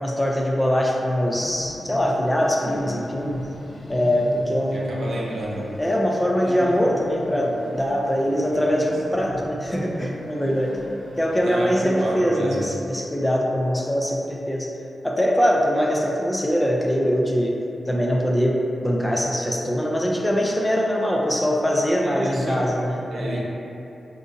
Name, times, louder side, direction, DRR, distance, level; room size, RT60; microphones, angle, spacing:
voice 1, 0.0-3.4 3.9-5.2 5.8-10.8 11.2-14.7 15.0-17.6 17.9-23.4, equal, 10° left, -1 dB, 0.3 m, -22 dB
sound 1, 1.3-11.4, equal, 75° left, 0.8 m, -38 dB
voice 2, 4.7-5.7 6.4-6.6 8.3-8.9 11.4-12.6 22.0-22.6 23.1-23.4, right 1 dB, 80° right, -5 dB, 0.6 m, -30 dB
3.8 x 2.5 x 2.5 m, 2.8 s
cardioid pair, 85°, 0 cm